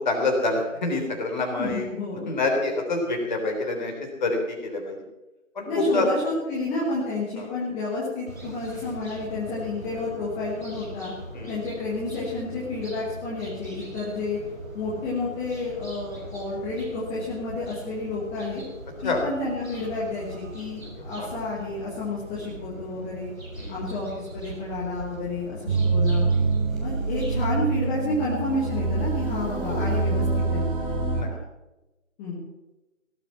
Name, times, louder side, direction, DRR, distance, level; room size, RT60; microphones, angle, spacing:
voice 1, 0.1-1.9 2.3-3.9 4.2-5.0 5.6-6.1 7.4-7.5 11.3-11.6 19.0-19.2 21.0-21.3 23.6-23.9 29.7-29.8 31.1-31.3, left 2 dB, 35° left, 2 dB, 3.6 m, -27 dB
voice 2, 1.6-2.3 5.7-11.1 11.5-14.4 14.7-18.6 19.0-23.3 23.7-26.3 26.8-30.7 31.3-31.4 32.2-32.4, left 2 dB, 10° left, -7 dB, 1.3 m, -30 dB
sound 1, 8.3-27.5, right 1 dB, 85° right, 6.4 m, -40 dB
sound 2, 25.7-31.2, right 3 dB, 40° right, 3.0 m, -25 dB
17.0 x 9.1 x 7.1 m, 1.0 s
figure-of-eight pair, 155°, 39 cm